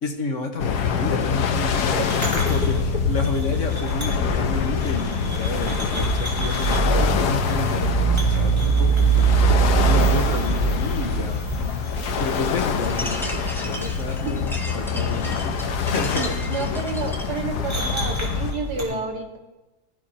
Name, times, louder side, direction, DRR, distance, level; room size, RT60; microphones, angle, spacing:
voice 1, 0.0-2.8 3.1-11.8 12.2-16.8 18.7-19.0, left 3 dB, 50° left, 3 dB, 1.8 m, -31 dB
sound 1, 0.6-18.5, left 7 dB, 80° left, 1.4 m, -25 dB
sound 2, 1.3-18.8, right 5 dB, 20° right, 4.4 m, -25 dB
sound 3, 12.8-17.4, equal, ahead, 1.3 m, -36 dB
voice 2, 16.2-19.4, right 4 dB, 85° right, 1 dB, 2.4 m, -30 dB
18.5 x 15.5 x 3.0 m, 1.1 s
omnidirectional pair, 1.7 m